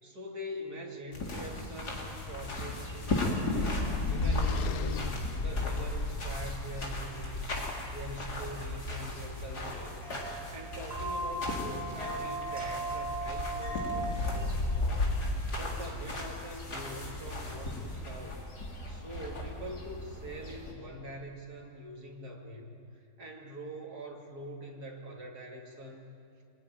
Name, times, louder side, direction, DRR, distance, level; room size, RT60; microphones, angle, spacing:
voice 1, 0.0-3.8 4.1-5.0 5.4-7.6 7.9-15.2 15.6-18.5 18.9-26.1, equal, 75° right, 1 dB, 3.2 m, -44 dB
sound 1, 1.1-20.7, left 2 dB, 85° left, 4.0 m, -35 dB
sound 2, 2.2-6.6, left 11 dB, 70° left, 1.2 m, -44 dB
sound 3, 6.4-14.0, right 2 dB, 40° right, 4.8 m, -39 dB
26.5 x 19.0 x 9.7 m, 2.4 s
omnidirectional pair, 1.7 m